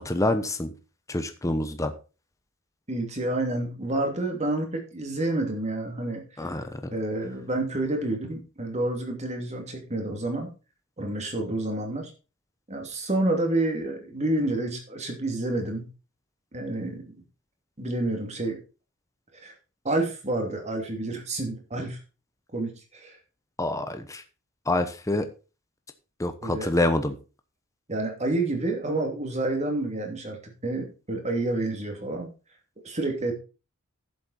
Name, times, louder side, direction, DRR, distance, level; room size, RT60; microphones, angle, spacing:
voice 1, 0.0-0.7 1.1-1.9 6.4-6.8 23.6-24.2 24.7-25.3 26.2-27.2, left 2 dB, 15° left, 8 dB, 0.9 m, -26 dB
voice 2, 2.9-6.2 6.9-10.5 11.0-12.1 12.7-15.9 16.5-17.2 17.8-18.6 19.4-19.5 19.8-22.0 22.5-23.2 26.4-26.7 27.9-32.3 32.8-33.3, right 2 dB, 30° right, 3 dB, 2.7 m, -29 dB
11.0 x 7.7 x 4.3 m, 0.33 s
head